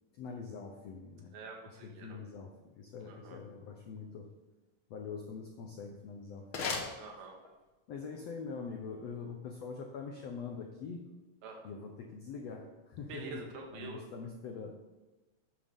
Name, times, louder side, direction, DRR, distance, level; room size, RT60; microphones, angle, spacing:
voice 1, 0.1-1.3 1.7-4.3 4.9-6.7 7.9-11.0 11.6-13.4 13.7-14.7, left 5 dB, 85° left, 2 dB, 1.4 m, -44 dB
voice 2, 1.3-2.2 3.0-3.4 7.0-7.4 11.4-11.7 13.1-14.0, right 3 dB, 80° right, 0 dB, 3.6 m, -46 dB
sound 1, 5.6-7.7, left 4 dB, 60° left, 1.4 m, -40 dB
11.5 x 9.6 x 3.7 m, 1.1 s
omnidirectional pair, 4.3 m